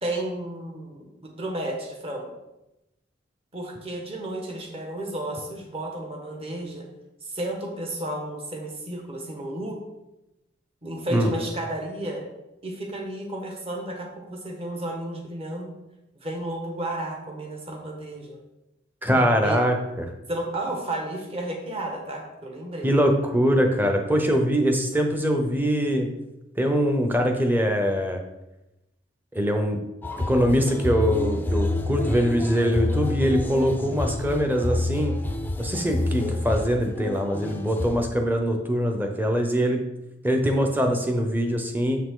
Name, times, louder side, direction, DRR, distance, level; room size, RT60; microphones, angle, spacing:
voice 1, 0.0-2.3 3.5-6.9 7.2-9.8 10.8-12.2 12.6-15.7 16.2-18.4 19.1-19.6 20.3-22.9, right 1 dB, 30° right, 1 dB, 1.3 m, -32 dB
voice 2, 19.0-20.1 22.8-26.1 26.6-28.2 29.3-29.8 30.3-35.1 35.6-39.8 40.2-42.0, equal, 10° right, 4 dB, 0.8 m, -23 dB
sound 1, 30.0-38.1, left 1 dB, 10° left, 0.5 m, -28 dB
7.0 x 5.7 x 3.8 m, 0.94 s
head